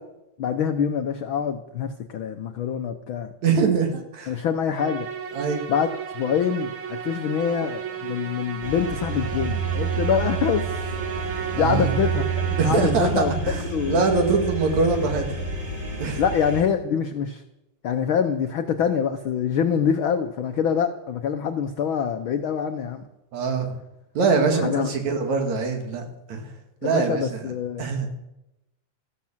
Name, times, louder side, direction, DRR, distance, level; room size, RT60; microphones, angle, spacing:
voice 1, 0.4-3.3 4.3-5.1 5.7-5.9 6.1-10.7 11.1-13.3 13.7-14.0 16.2-17.4 17.8-23.0 24.6-24.9 26.8-27.9, left 7 dB, 75° left, 7 dB, 1.2 m, -25 dB
voice 2, 3.4-4.4 5.3-5.6 11.6-11.9 12.6-13.6 13.9-15.3 16.0-16.2 23.3-23.8 24.2-26.5 26.8-27.4 27.8-28.1, right 4 dB, 70° right, 4 dB, 3.4 m, -23 dB
Musical instrument, 4.7-13.3, right 8 dB, 50° right, 2.0 m, -34 dB
sound 1, 8.6-16.6, right 5 dB, 20° right, 2.4 m, -29 dB
14.5 x 12.0 x 7.3 m, 0.92 s
omnidirectional pair, 3.3 m